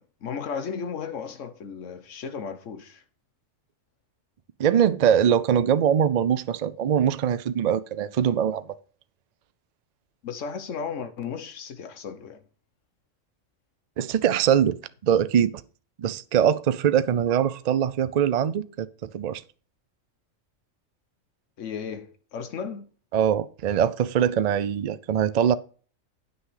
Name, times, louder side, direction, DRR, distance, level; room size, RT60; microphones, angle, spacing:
voice 1, 0.0-3.0 10.2-12.4 21.6-22.9, left 6 dB, 65° left, 1.4 m, -35 dB
voice 2, 4.6-8.6 14.0-15.6 16.0-19.4 23.1-25.5, right 9 dB, 80° right, 0.3 m, -22 dB
9.5 x 6.3 x 4.8 m
omnidirectional pair, 1.4 m